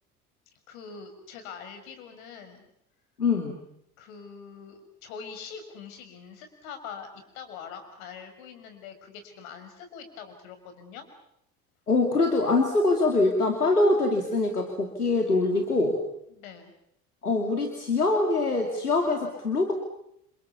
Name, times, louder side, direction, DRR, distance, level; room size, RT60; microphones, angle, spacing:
voice 1, 0.7-2.7 4.0-7.1 7.3-11.1 16.3-16.7, left 6 dB, 65° left, 8 dB, 6.1 m, -43 dB
voice 2, 3.2-3.6 11.9-16.0 17.2-19.7, left 2 dB, 85° left, 4 dB, 2.6 m, -24 dB
29.5 x 27.5 x 7.1 m, 0.75 s
figure-of-eight pair, 65°, 44 cm